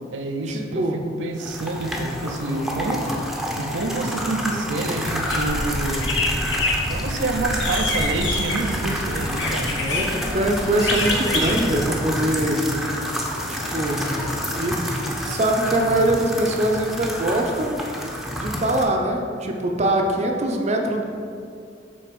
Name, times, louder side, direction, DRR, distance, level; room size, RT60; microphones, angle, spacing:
voice 1, 0.1-3.1 3.6-6.2 6.9-9.9, right 2 dB, 85° right, 4 dB, 0.6 m, -28 dB
sound 1, 1.4-18.8, equal, ahead, 0.7 m, -29 dB
sound 2, 5.2-11.9, left 2 dB, 85° left, 1.1 m, -26 dB
sound 3, 8.2-17.7, left 2 dB, 45° left, 0.6 m, -42 dB
voice 2, 9.8-12.6 13.5-14.0 14.5-14.8 15.3-17.8 18.3-21.0, right 1 dB, 40° right, 2 dB, 0.6 m, -23 dB
7.5 x 4.0 x 5.2 m, 2.4 s
head